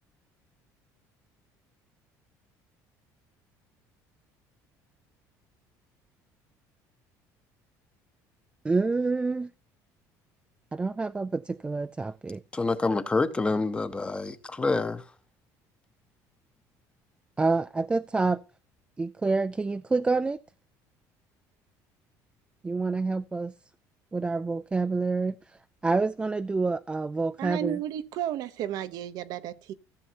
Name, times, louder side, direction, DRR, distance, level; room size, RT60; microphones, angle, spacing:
voice 1, 8.6-9.5 10.7-12.4 17.4-18.4 19.0-20.4 22.6-23.5 24.1-25.6 25.8-27.8, right 3 dB, 15° right, 0.4 m, -27 dB
voice 2, 12.5-15.0, left 3 dB, 15° left, 0.8 m, -27 dB
voice 3, 27.4-29.7, right 11 dB, 65° right, 0.8 m, -33 dB
15.5 x 6.7 x 2.8 m
cardioid pair, 125°, 7 cm